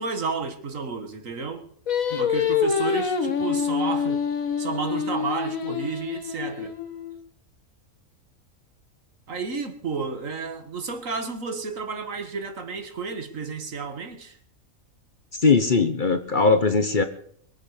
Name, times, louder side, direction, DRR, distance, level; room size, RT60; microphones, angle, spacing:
voice 1, 0.0-1.6 2.2-4.2 4.6-6.7 9.3-14.4, right 5 dB, 65° right, 8 dB, 2.0 m, -31 dB
Singing, 1.9-7.2, left 6 dB, 75° left, 1.9 m, -26 dB
voice 2, 15.4-17.0, left 4 dB, 40° left, 9 dB, 1.0 m, -20 dB
22.5 x 8.5 x 6.6 m, 0.64 s
omnidirectional pair, 1.5 m